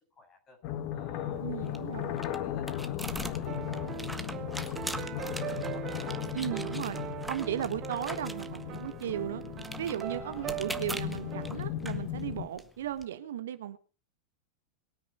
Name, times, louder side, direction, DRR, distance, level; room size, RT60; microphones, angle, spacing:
voice 1, 0.1-0.6 0.9-1.8 2.1-5.9 10.1-10.6, left 3 dB, 25° left, 7 dB, 7.5 m, -56 dB
sound 1, 0.6-12.5, left 11 dB, 45° left, 1.6 m, -37 dB
sound 2, 1.3-13.0, right 1 dB, 5° right, 1.5 m, -43 dB
voice 2, 1.4-2.2 6.3-7.0 7.3-9.4 9.8-13.8, right 11 dB, 60° right, 12 dB, 1.4 m, -36 dB
sound 3, 3.5-11.5, right 12 dB, 35° right, 1.3 m, -40 dB
23.0 x 10.0 x 5.4 m, 0.37 s
figure-of-eight pair, 90°, 0 cm